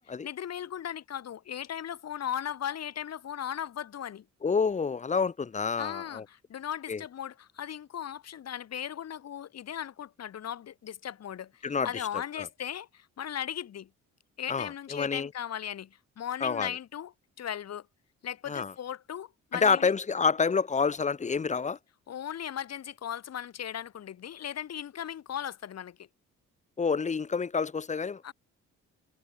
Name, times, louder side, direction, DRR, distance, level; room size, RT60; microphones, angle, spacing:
voice 1, 0.2-4.3 5.8-13.9 14.4-17.1 17.4-17.9 18.2-19.9 22.1-26.1 28.2-28.3, left 9 dB, 55° left, 2.2 m, -37 dB
voice 2, 4.4-6.2 6.9-7.0 11.6-12.1 12.4-12.5 14.5-15.3 16.4-16.7 18.5-18.7 19.5-21.8 26.8-28.3, left 5 dB, 25° left, 0.7 m, -28 dB
cardioid pair, 90°, 30 cm